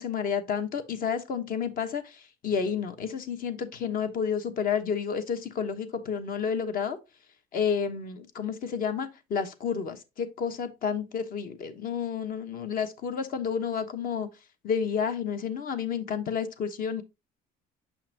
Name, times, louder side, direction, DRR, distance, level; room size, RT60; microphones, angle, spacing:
voice 1, 0.0-7.0 7.5-14.3 14.6-17.0, left 7 dB, 55° left, 1.1 m, -30 dB
6.3 x 5.7 x 2.8 m
cardioid pair, 110°, 17 cm